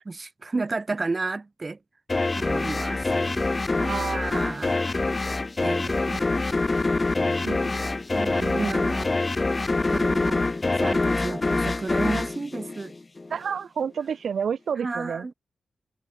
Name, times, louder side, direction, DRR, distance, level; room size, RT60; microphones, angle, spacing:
voice 1, 0.1-1.8 2.4-3.5 4.0-5.1 5.6-6.2 7.1-7.5 8.1-9.1 9.9-10.5 10.8-12.9 14.8-15.3, right 3 dB, 35° right, 4.5 m, -32 dB
sound 1, 2.1-13.4, left 3 dB, 30° left, 1.8 m, -25 dB
voice 2, 3.7-4.4 6.1-6.3 7.4-7.7 8.4-8.7 10.4-10.5 13.3-15.3, right 7 dB, 75° right, 4.4 m, -30 dB
cardioid pair, 60°, 0 cm